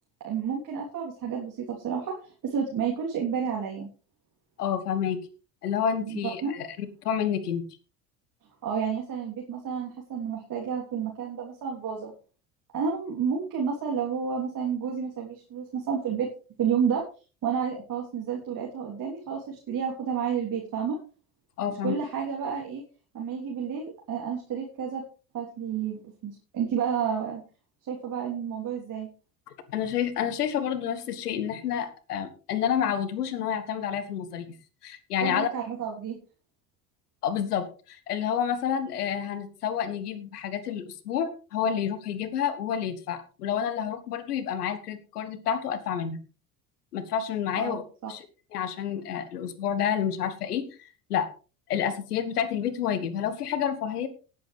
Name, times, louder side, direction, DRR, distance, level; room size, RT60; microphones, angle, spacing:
voice 1, 0.2-3.9 6.0-6.5 8.6-12.1 12.7-16.3 16.6-17.0 17.4-21.0 21.7-22.8 23.1-25.0 25.3-27.4 27.9-29.1 35.2-36.2 47.5-48.1, right 7 dB, 45° right, -1 dB, 3.4 m, -30 dB
voice 2, 4.6-5.2 5.6-7.6 21.6-21.9 29.7-34.5 34.8-35.5 37.2-46.2 46.9-47.8 48.1-48.2 48.5-51.3 51.7-54.1, left 8 dB, 80° left, 13 dB, 1.5 m, -29 dB
19.0 x 8.4 x 3.4 m, 0.35 s
hypercardioid pair, 65°, 46 cm